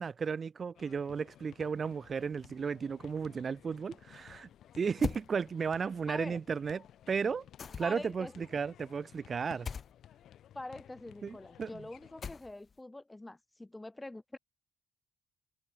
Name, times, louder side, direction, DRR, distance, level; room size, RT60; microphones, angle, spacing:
voice 1, 0.0-4.5 4.8-7.4 7.8-9.7 11.2-11.7, right 6 dB, 45° right, 0.4 m, -34 dB
sound 1, 0.8-12.3, left 11 dB, 70° left, 6.4 m, -57 dB
sound 2, 5.0-5.3 7.6-8.1 9.6-9.9 12.2-12.7, left 6 dB, 45° left, 1.1 m, -39 dB
voice 2, 6.1-6.4 7.8-8.4 10.5-14.4, left 2 dB, 15° left, 1.0 m, -45 dB
open air
cardioid pair, 90°, 0 cm